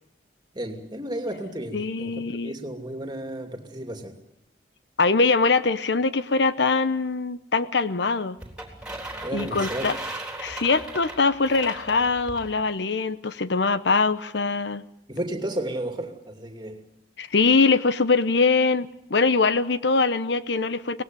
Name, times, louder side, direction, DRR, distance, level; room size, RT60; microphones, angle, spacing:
voice 1, 0.5-4.2 9.2-9.9 15.1-16.8, right 1 dB, 25° right, 5 dB, 2.7 m, -33 dB
voice 2, 1.7-2.5 5.0-8.4 9.3-10.0 10.4-14.8 17.2-21.0, left 4 dB, 65° left, 14 dB, 0.9 m, -22 dB
sound 1, 8.4-12.5, right 2 dB, 5° right, 3.8 m, -37 dB
24.0 x 19.0 x 9.3 m, 0.79 s
head